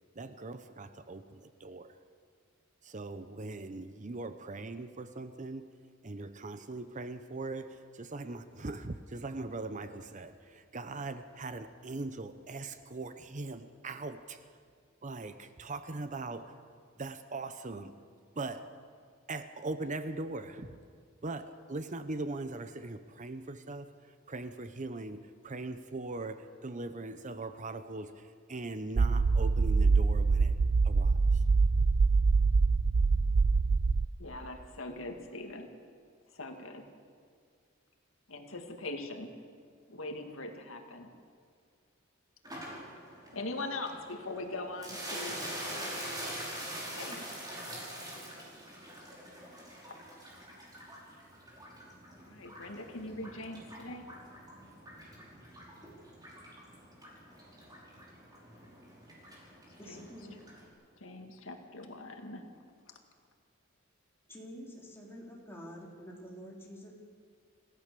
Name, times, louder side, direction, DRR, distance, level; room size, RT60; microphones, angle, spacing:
voice 1, 0.1-2.0 2.8-5.7 6.0-14.5 15.0-16.6 17.0-17.9 18.4-18.7 19.3-20.8 21.2-30.6 30.8-31.4 31.7-31.8, right 2 dB, 40° right, 10 dB, 0.8 m, -40 dB
sound 1, 29.0-34.1, right 4 dB, 70° right, 0.6 m, -25 dB
voice 2, 34.2-35.7 36.3-36.8 38.3-39.3 39.9-41.1 42.8-43.0 43.3-46.0 46.9-47.3 49.9-50.0 52.2-54.1 59.9-60.1 61.0-62.4 62.9-63.0, left 2 dB, 75° left, 4 dB, 2.1 m, -42 dB
sound 2, 42.4-60.7, right 1 dB, 20° right, 5.1 m, -45 dB
voice 3, 59.8-60.3 64.3-66.9, equal, 10° left, -3 dB, 4.0 m, -47 dB
27.0 x 16.0 x 6.9 m, 2.1 s
head